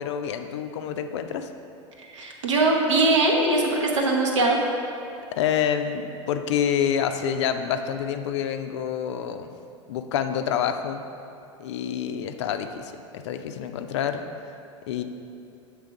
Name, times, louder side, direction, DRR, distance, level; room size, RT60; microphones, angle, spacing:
voice 1, 0.0-1.5 5.3-9.5 9.9-11.0 11.6-14.2 14.9-15.0, left 8 dB, 65° left, 8 dB, 0.4 m, -27 dB
voice 2, 2.1-4.6, right 2 dB, 70° right, 0 dB, 0.9 m, -21 dB
7.4 x 3.4 x 4.7 m, 2.7 s
figure-of-eight pair, 80°, 16 cm